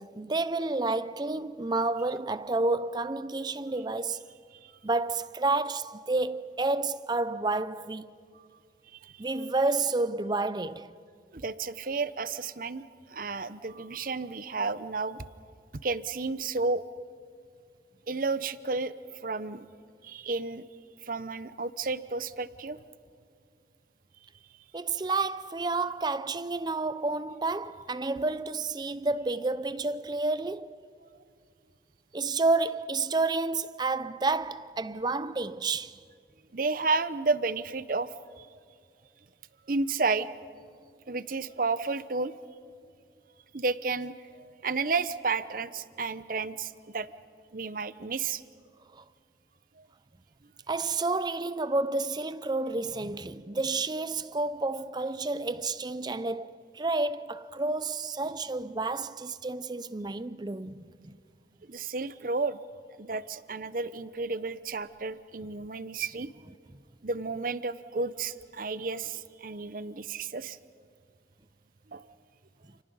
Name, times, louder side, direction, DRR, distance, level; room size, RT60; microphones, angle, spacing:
voice 1, 0.0-4.2 4.8-8.1 9.2-10.9 24.7-30.8 32.1-36.0 48.9-49.0 50.7-61.2, right 3 dB, 25° right, 0.6 m, -30 dB
voice 2, 11.3-12.8 13.1-15.3 15.8-16.8 18.1-18.9 19.2-19.7 20.0-20.6 21.0-22.8 31.0-31.1 36.5-38.1 38.4-38.6 39.7-40.3 41.1-42.3 43.5-47.1 47.5-48.4 49.8-49.9 61.7-62.6 63.0-66.3 67.0-70.6 71.9-72.1, right 4 dB, 50° right, 0.8 m, -32 dB
29.5 x 29.0 x 5.6 m
head